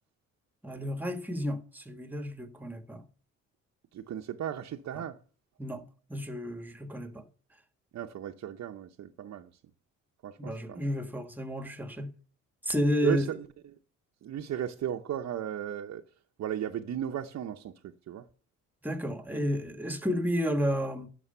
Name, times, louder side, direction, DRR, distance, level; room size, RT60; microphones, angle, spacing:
voice 1, 0.6-3.0 5.6-5.8 6.1-7.2 10.4-12.1 12.6-13.3 18.8-21.1, equal, 5° right, 1.5 m, -31 dB
voice 2, 3.9-5.2 7.9-9.5 10.2-10.9 13.0-13.5 14.2-16.0 16.4-18.3, right 10 dB, 60° right, 0.8 m, -35 dB
11.0 x 6.3 x 5.6 m
cardioid pair, 90°, 30 cm